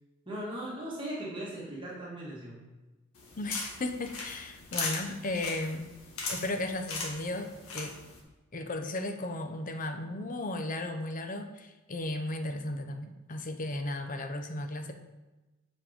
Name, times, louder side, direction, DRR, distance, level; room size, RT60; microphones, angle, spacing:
voice 1, 0.3-2.6, right 1 dB, 25° right, -6 dB, 1.8 m, -38 dB
sound 1, 3.2-8.2, left 3 dB, 85° left, 1.7 m, -39 dB
voice 2, 3.4-5.9 6.3-8.0 8.5-14.9, left 2 dB, 40° left, 6 dB, 0.7 m, -35 dB
7.4 x 5.3 x 5.1 m, 1.1 s
head